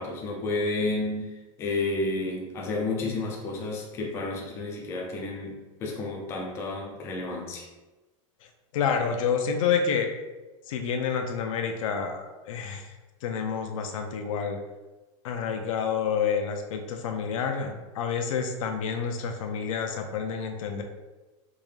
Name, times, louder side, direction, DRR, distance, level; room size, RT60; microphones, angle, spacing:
voice 1, 0.0-7.7, left 2 dB, 15° left, -1 dB, 0.4 m, -31 dB
voice 2, 8.7-10.1 10.7-12.9 13.2-14.6 15.2-20.8, left 6 dB, 85° left, 4 dB, 0.6 m, -28 dB
3.6 x 2.6 x 3.2 m, 1.2 s
supercardioid pair, 180°, 16 cm